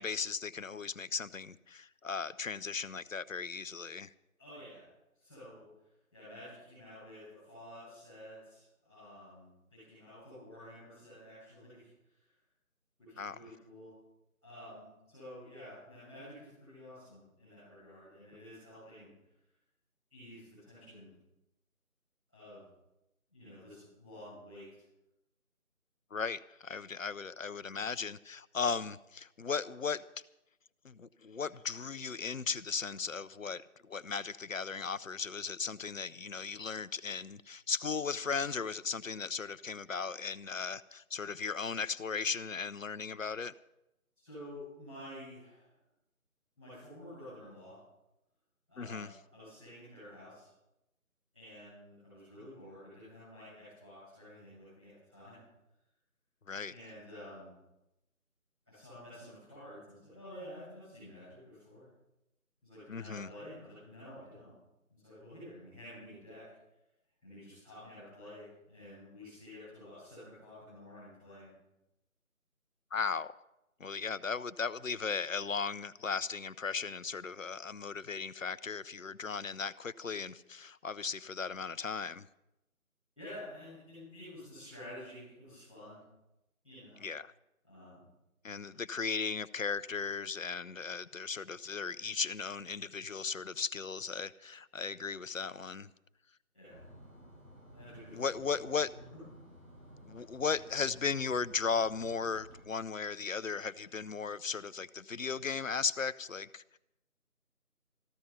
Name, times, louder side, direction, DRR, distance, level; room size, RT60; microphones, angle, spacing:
voice 1, 0.0-4.1 13.2-13.4 26.1-30.0 30.8-43.5 48.8-49.1 56.5-56.7 62.9-63.3 72.9-73.4 73.8-82.3 87.0-87.3 88.4-95.9 98.1-98.9 100.0-106.8, left 5 dB, 65° left, 0.7 m, -36 dB
voice 2, 4.4-4.9 5.1-5.7 6.1-11.9 12.2-12.3 13.0-13.9 14.4-19.1 20.1-21.1 22.3-22.7 23.3-24.8 44.2-45.7 46.6-47.8 48.7-50.4 51.3-55.4 56.7-57.5 58.7-61.8 62.6-64.5 64.9-66.4 67.2-71.5 83.2-86.0 86.6-87.0 87.6-88.0 96.5-96.8 97.7-99.2, left 1 dB, 5° right, 6.8 m, -50 dB
sound 1, 96.7-102.6, equal, 70° right, 7.4 m, -55 dB
14.5 x 12.5 x 5.8 m
figure-of-eight pair, 180°, 43 cm